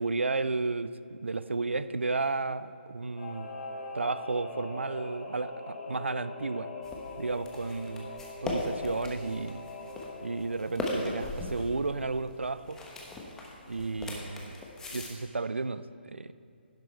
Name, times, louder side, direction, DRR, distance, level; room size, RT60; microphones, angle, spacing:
voice 1, 0.0-3.5 3.9-6.7 7.2-8.1 8.4-9.6 10.2-12.8 13.7-14.6 14.9-16.3, right 3 dB, 90° right, 14 dB, 0.4 m, -33 dB
Singing / Musical instrument, 3.2-13.2 13.5-13.6, left 2 dB, 45° left, 2.6 m, -43 dB
sound 1, 6.8-15.1, left 2 dB, 10° left, 1.0 m, -38 dB
11.0 x 7.7 x 4.4 m, 2.4 s
figure-of-eight pair, 140°, 6 cm